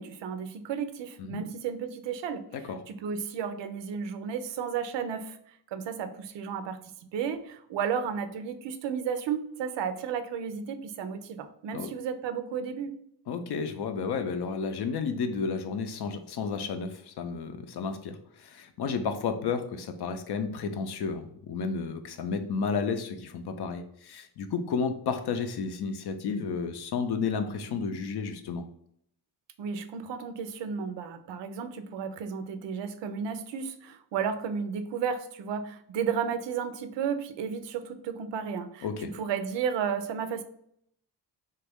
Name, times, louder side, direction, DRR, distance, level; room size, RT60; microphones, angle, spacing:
voice 1, 0.0-2.4 2.9-5.4 5.7-6.8 7.1-12.9 29.6-40.4, right 7 dB, 85° right, 10 dB, 0.5 m, -33 dB
voice 2, 13.3-28.6 38.8-39.1, left 5 dB, 65° left, 8 dB, 0.6 m, -32 dB
3.1 x 2.4 x 3.4 m, 0.71 s
cardioid pair, 105°, 42 cm